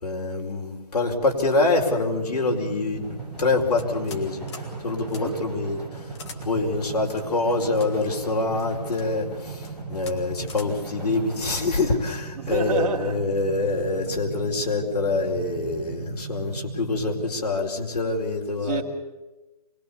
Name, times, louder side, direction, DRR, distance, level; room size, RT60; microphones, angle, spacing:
voice 1, 0.0-6.1 6.4-18.8, left 3 dB, 70° left, 4.8 m, -25 dB
sound 1, 1.9-17.3, right 6 dB, 20° right, 4.6 m, -38 dB
sound 2, 2.9-12.0, right 1 dB, 5° left, 5.9 m, -42 dB
sound 3, 3.7-4.2 4.5-4.7 5.1-5.2 6.1-6.4 7.2-7.9 8.6-9.1 9.6-9.7 10.0-10.2 10.5-10.7, left 5 dB, 40° left, 2.9 m, -43 dB
voice 2, 12.4-13.2 18.6-18.8, right 6 dB, 55° right, 3.0 m, -28 dB
24.5 x 21.0 x 7.2 m
hypercardioid pair, 165°, 21 cm